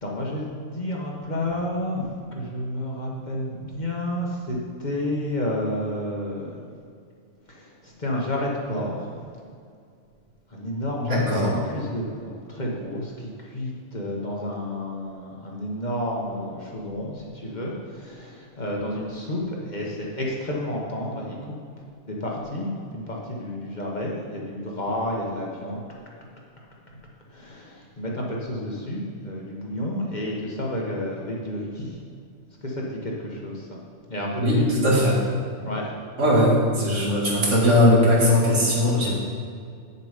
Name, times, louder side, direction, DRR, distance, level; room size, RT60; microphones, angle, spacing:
voice 1, 0.0-6.6 7.5-9.2 10.5-21.6 22.0-25.8 27.3-32.0 32.6-33.8 34.1-34.9 35.6-35.9, left 1 dB, 40° left, -3 dB, 1.4 m, -30 dB
voice 2, 11.0-11.5 34.4-35.2 36.2-39.2, left 1 dB, 75° right, -5 dB, 2.4 m, -19 dB
8.3 x 6.9 x 5.0 m, 2.3 s
omnidirectional pair, 1.3 m